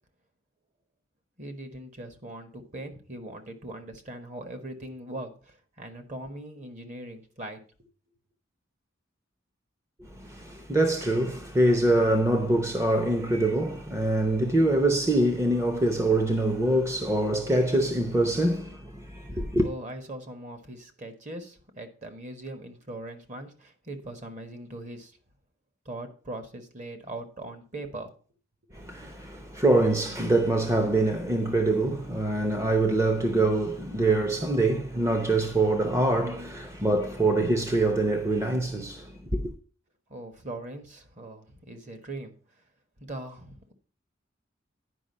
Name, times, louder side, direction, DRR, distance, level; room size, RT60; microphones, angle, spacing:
voice 1, 1.4-7.6 19.3-25.1 25.8-28.1 40.1-42.3 43.0-43.7, right 1 dB, 40° right, 1.4 m, -40 dB
voice 2, 10.0-19.7 28.7-39.5, right 2 dB, 15° right, 0.7 m, -24 dB
10.0 x 5.4 x 5.4 m
head